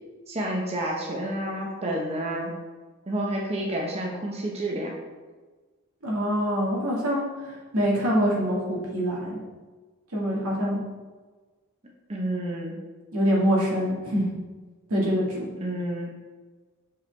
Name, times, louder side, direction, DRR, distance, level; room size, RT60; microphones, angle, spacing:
voice 1, 0.3-2.6 3.1-4.9 12.1-12.8 15.6-16.1, right 1 dB, 30° right, -2 dB, 0.9 m, -29 dB
voice 2, 6.0-7.3 7.7-9.4 10.1-10.8 13.1-14.3 14.9-15.5, equal, 80° right, -4 dB, 1.9 m, -24 dB
6.8 x 5.4 x 3.4 m, 1.3 s
head